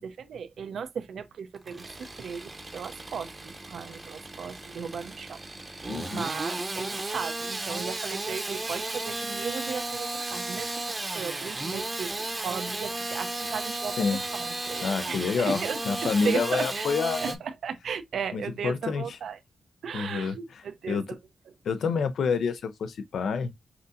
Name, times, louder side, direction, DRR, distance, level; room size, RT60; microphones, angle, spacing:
voice 1, 0.0-5.4 5.7-14.0 14.3-16.9 17.2-19.4 19.8-21.2, right 6 dB, 75° right, 0.6 m, -36 dB
Engine starting / Sawing, 1.5-17.4, right 2 dB, 20° right, 0.8 m, -34 dB
voice 2, 5.9-6.3 14.0-14.2 14.8-15.6 15.9-17.4 18.3-19.2 19.9-21.1 21.6-23.5, left 5 dB, 75° left, 0.5 m, -28 dB
5.9 x 2.7 x 2.5 m
wide cardioid pair, 130°, 0 cm